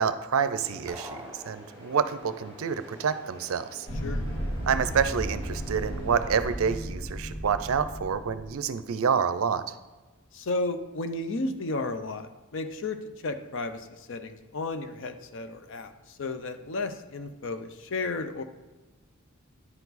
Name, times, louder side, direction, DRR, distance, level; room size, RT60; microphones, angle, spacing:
voice 1, 0.0-3.9 4.7-9.7, right 6 dB, 70° right, 13 dB, 0.4 m, -28 dB
sound 1, 0.6-6.8, left 1 dB, 20° left, 2.3 m, -49 dB
sound 2, 0.9-2.2, equal, 15° right, 0.6 m, -44 dB
sound 3, 3.9-8.5, equal, 75° left, 2.0 m, -34 dB
voice 2, 10.3-18.4, left 2 dB, 60° left, 9 dB, 0.6 m, -33 dB
9.9 x 4.6 x 4.1 m, 1.2 s
head